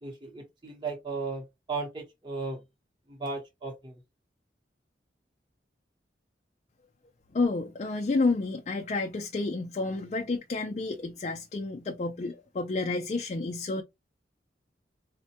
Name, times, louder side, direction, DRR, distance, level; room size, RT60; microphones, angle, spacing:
voice 1, 0.0-2.6 3.1-4.0, right 3 dB, 25° right, 0.9 m, -36 dB
voice 2, 7.3-13.8, left 3 dB, 35° left, 0.3 m, -30 dB
4.1 x 2.1 x 2.8 m
head